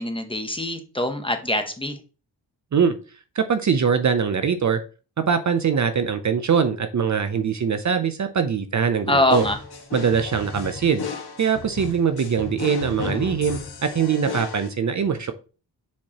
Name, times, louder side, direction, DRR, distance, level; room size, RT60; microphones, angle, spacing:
voice 1, 0.0-2.0 9.1-9.6, left 1 dB, 15° left, 6 dB, 0.8 m, -23 dB
voice 2, 3.4-4.8 5.2-9.4 9.9-11.0 11.4-15.3, right 6 dB, 45° right, 9 dB, 0.5 m, -22 dB
sound 1, 9.3-14.7, left 4 dB, 65° left, 1.5 m, -33 dB
7.2 x 4.6 x 2.9 m, 0.35 s
wide cardioid pair, 125°, 41 cm